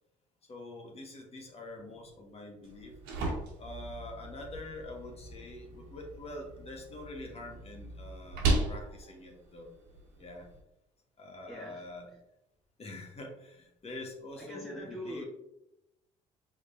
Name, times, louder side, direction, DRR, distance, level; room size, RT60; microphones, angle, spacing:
voice 1, 0.5-2.9 3.6-9.7 10.2-10.5 11.2-12.1 12.8-15.2, left 1 dB, 40° left, 1 dB, 1.4 m, -45 dB
sound 1, 2.6-10.6, right 2 dB, 75° right, 1.3 m, -37 dB
voice 2, 11.5-11.8 14.4-15.2, equal, ahead, -4 dB, 1.2 m, -42 dB
5.0 x 3.6 x 2.6 m, 0.87 s
hypercardioid pair, 60°, 16 cm